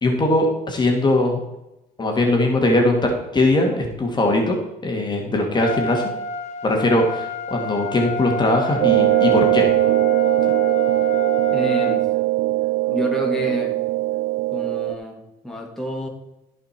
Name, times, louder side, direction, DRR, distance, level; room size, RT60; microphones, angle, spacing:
voice 1, 0.0-1.4 2.0-4.6 4.8-6.1 6.6-9.7, left 1 dB, 25° left, 1 dB, 2.0 m, -20 dB
Trumpet, 5.5-12.1, left 2 dB, 40° left, 1.5 m, -28 dB
sound 1, 8.8-14.9, right 18 dB, 65° right, 0.4 m, -20 dB
voice 2, 11.5-12.1 12.9-13.8 14.5-16.1, equal, ahead, -2 dB, 2.1 m, -28 dB
14.5 x 5.4 x 4.4 m, 0.91 s
cardioid pair, 110°, 17 cm